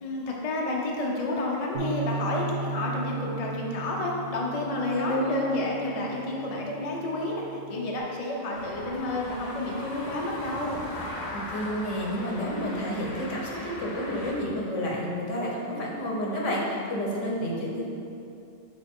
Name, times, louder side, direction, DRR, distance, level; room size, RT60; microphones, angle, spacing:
voice 1, 0.0-10.8, left 2 dB, 35° left, -2 dB, 0.7 m, -30 dB
Bass guitar, 1.7-8.0, right 4 dB, 75° right, 1.1 m, -37 dB
voice 2, 4.9-5.4 11.3-17.8, equal, 75° left, -3 dB, 1.4 m, -30 dB
sound 1, 8.5-14.3, left 1 dB, 60° left, 1.1 m, -38 dB
7.4 x 3.9 x 3.6 m, 2.7 s
omnidirectional pair, 1.3 m